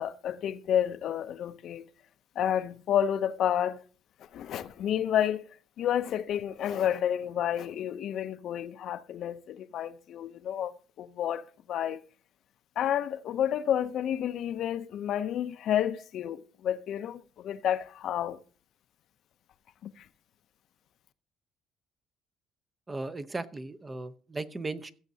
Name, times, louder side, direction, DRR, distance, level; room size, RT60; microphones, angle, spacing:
voice 1, 0.0-1.8 2.4-3.8 4.3-5.4 5.8-10.7 11.0-11.4 11.7-12.0 12.8-18.4 20.0-20.1, left 10 dB, 65° left, 0.6 m, -30 dB
voice 2, 22.9-24.9, right 2 dB, 20° right, 0.7 m, -36 dB
16.0 x 7.2 x 2.7 m
cardioid pair, 105°, 0 cm